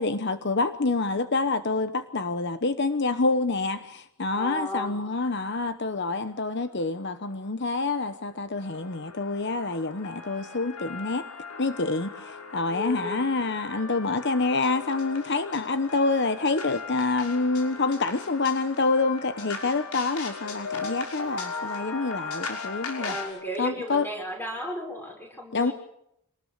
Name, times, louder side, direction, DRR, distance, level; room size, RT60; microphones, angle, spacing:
voice 1, 0.0-11.3 11.6-23.1 23.6-24.1 25.5-25.7, left 3 dB, 50° left, 11 dB, 1.0 m, -27 dB
voice 2, 4.3-5.0 12.7-13.3 22.9-25.7, left 1 dB, 10° left, 2 dB, 6.1 m, -35 dB
sound 1, 6.7-6.8 7.1-7.3 7.6-23.3, left 4 dB, 90° left, 6.0 m, -38 dB
27.0 x 19.5 x 6.7 m, 0.78 s
head